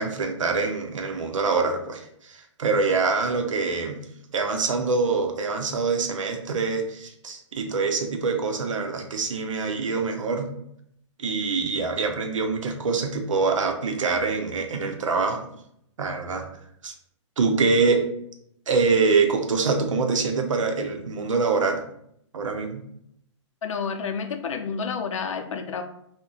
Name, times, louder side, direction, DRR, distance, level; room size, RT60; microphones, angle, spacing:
voice 1, 0.0-4.0 4.3-10.5 11.2-15.5 16.0-16.5 16.8-16.9 17.4-18.1 18.7-21.8 22.3-22.8, right 4 dB, 90° right, 4 dB, 0.6 m, -25 dB
voice 2, 23.6-25.8, left 6 dB, 80° left, 6 dB, 0.5 m, -30 dB
2.4 x 2.1 x 3.8 m, 0.72 s
hypercardioid pair, 150°, 16 cm